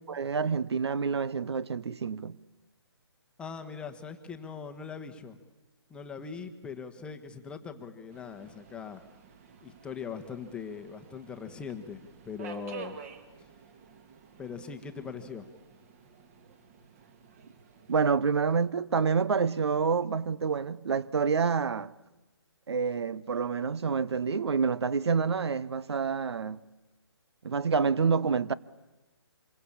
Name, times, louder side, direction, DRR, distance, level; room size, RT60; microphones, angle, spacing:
voice 1, 0.0-2.4 17.9-21.9 22.7-26.6 27.4-28.5, right 5 dB, 70° right, 0.9 m, -28 dB
voice 2, 3.4-5.4 5.9-9.0 9.6-13.0 14.4-15.5, left 6 dB, 5° left, 1.1 m, -41 dB
Subway metro underground, 8.1-18.0, right 6 dB, 30° right, 2.2 m, -51 dB
26.5 x 22.5 x 8.7 m
hypercardioid pair, 155°, 14 cm